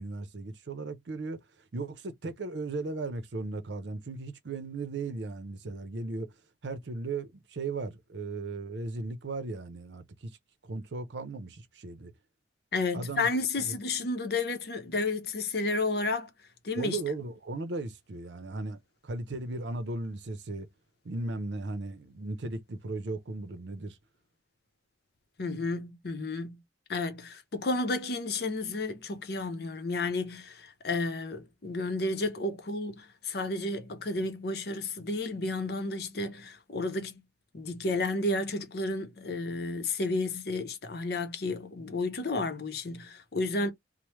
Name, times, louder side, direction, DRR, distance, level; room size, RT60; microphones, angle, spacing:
voice 1, 0.0-1.4 1.7-6.3 6.6-10.3 10.6-12.1 12.9-13.3 13.6-13.8 16.8-20.7 21.0-24.0, right 3 dB, 80° right, 0.6 m, -36 dB
voice 2, 12.7-16.3 16.6-17.0 25.4-26.6 26.9-37.2 37.5-43.7, left 2 dB, 60° left, 0.7 m, -32 dB
3.2 x 2.1 x 3.0 m
head